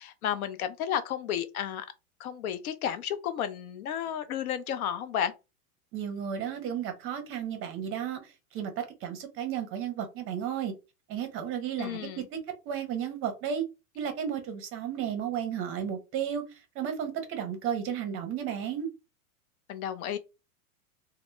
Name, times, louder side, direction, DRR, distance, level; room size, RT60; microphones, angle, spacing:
voice 1, 0.0-1.9 2.2-5.3 11.8-12.3 19.7-20.2, left 9 dB, 75° left, 0.6 m, -32 dB
voice 2, 5.9-8.2 8.5-10.7 11.1-12.4 12.7-13.6 14.0-16.4 16.8-18.9, right 8 dB, 30° right, 0.5 m, -33 dB
2.1 x 2.0 x 3.0 m
hypercardioid pair, 115°, 43 cm